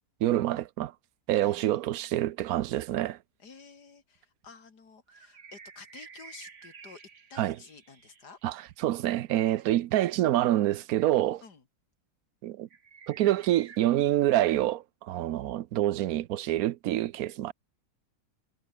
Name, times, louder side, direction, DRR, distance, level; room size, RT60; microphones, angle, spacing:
voice 1, 0.2-0.9 1.3-3.2 7.4-7.6 8.4-11.4 12.4-12.7 13.1-17.5, right 14 dB, 70° right, 1.1 m, -27 dB
voice 2, 1.4-2.2 3.4-7.0 7.3-8.4 9.5-9.6 11.4-11.6, left 5 dB, 75° left, 3.2 m, -52 dB
sound 1, 5.1-8.4 12.7-13.8, right 6 dB, 50° right, 1.8 m, -51 dB
omnidirectional pair, 1.7 m